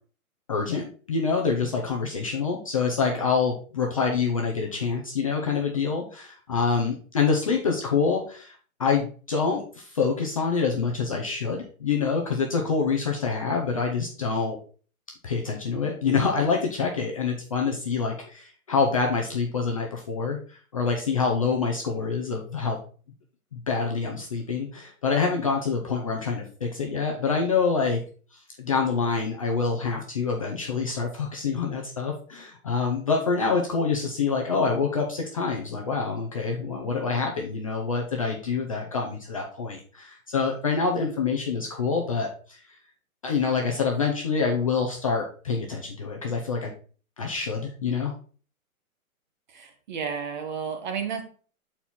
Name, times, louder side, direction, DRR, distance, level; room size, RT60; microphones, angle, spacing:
voice 1, 0.5-14.6 15.2-22.8 23.5-28.0 28.6-42.6 43.2-46.7 47.2-48.1, left 5 dB, 25° left, 0 dB, 0.5 m, -26 dB
voice 2, 49.5-51.2, right 6 dB, 35° right, 5 dB, 1.0 m, -32 dB
5.4 x 4.3 x 4.4 m, 0.40 s
hypercardioid pair, 155°, 44 cm